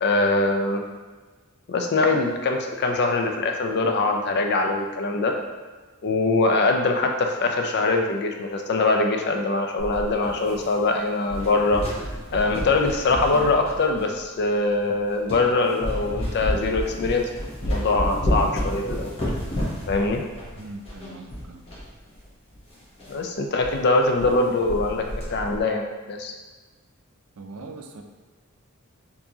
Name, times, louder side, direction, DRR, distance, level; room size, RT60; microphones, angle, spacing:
voice 1, 0.0-0.8 1.7-5.4 6.0-11.8 12.3-17.3 17.7-19.1 19.9-20.2 23.1-26.3, left 3 dB, 50° left, 3 dB, 0.4 m, -23 dB
sound 1, 9.8-10.9 11.2-14.2 14.8-14.9 15.3-15.5 15.8-21.9 22.1-22.2 22.5-22.6 23.0-23.2 23.6-23.7 24.0-24.4 24.6-25.6, equal, 25° left, 0.9 m, -30 dB
voice 2, 20.6-21.6 27.4-28.0, right 3 dB, 70° right, 4 dB, 0.4 m, -40 dB
4.5 x 2.7 x 2.8 m, 1.3 s
head